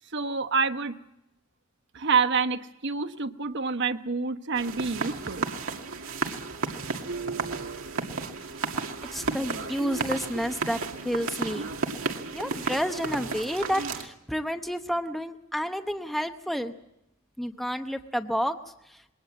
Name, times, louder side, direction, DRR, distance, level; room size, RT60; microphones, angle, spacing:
voice 1, 0.1-0.9 1.9-5.5, right 5 dB, 60° right, 9 dB, 1.1 m, -27 dB
sound 1, 4.6-14.1, right 4 dB, 90° right, 2.1 m, -33 dB
voice 2, 9.1-10.8 11.0-11.7 12.3-16.7 17.4-18.6, equal, ahead, 7 dB, 0.8 m, -30 dB
22.0 x 18.5 x 7.6 m, 0.85 s
head